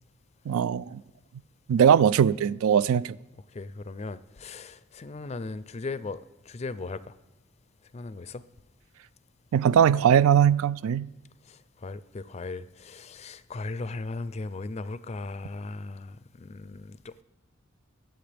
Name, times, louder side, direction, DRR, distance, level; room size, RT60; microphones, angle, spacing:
voice 1, 0.5-1.0 1.7-3.2 9.5-11.1, right 8 dB, 85° right, 0.3 m, -20 dB
voice 2, 3.3-6.2 6.5-7.1 7.9-8.4 11.5-17.2, left 3 dB, 30° left, 0.4 m, -37 dB
22.0 x 7.8 x 3.4 m
head